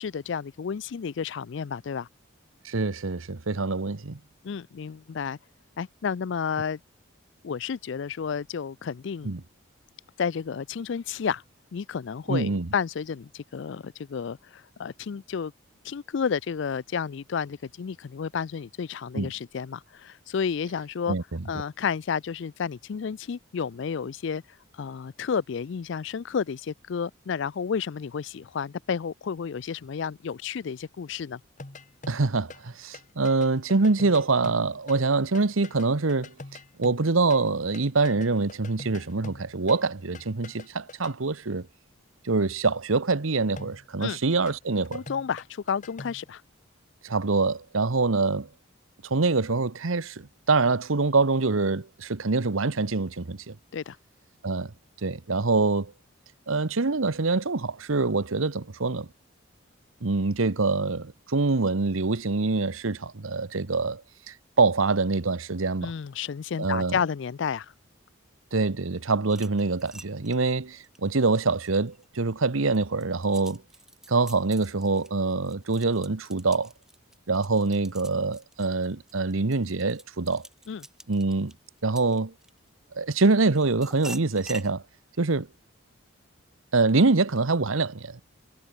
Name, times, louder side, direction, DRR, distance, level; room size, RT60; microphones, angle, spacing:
voice 1, 0.0-2.1 4.4-5.4 5.8-6.8 7.4-9.3 10.2-11.4 11.7-15.5 15.8-21.2 21.5-24.4 24.8-31.4 44.0-44.2 44.9-46.4 53.7-54.0 65.8-67.7 80.7-80.8, left 6 dB, 60° left, 0.4 m, -31 dB
voice 2, 2.6-4.2 9.2-9.4 12.3-12.7 19.1-19.3 21.1-21.4 32.1-36.3 36.8-41.7 42.2-45.0 47.0-48.5 49.0-53.6 54.4-54.7 55.0-55.9 56.5-59.1 60.0-64.0 64.3-65.9 66.6-67.0 68.5-73.6 74.1-76.7 77.3-80.5 81.1-81.5 81.8-82.3 82.9-84.8 85.2-85.5 86.7-88.2, right 3 dB, 80° right, 1.0 m, -25 dB
sound 1, 31.6-32.7 32.9-37.5 37.7-41.1 43.6-46.3, left 2 dB, 35° left, 1.2 m, -44 dB
sound 2, 69.3-72.1 72.5-82.7 83.2-84.7, right 1 dB, 5° right, 2.9 m, -47 dB
head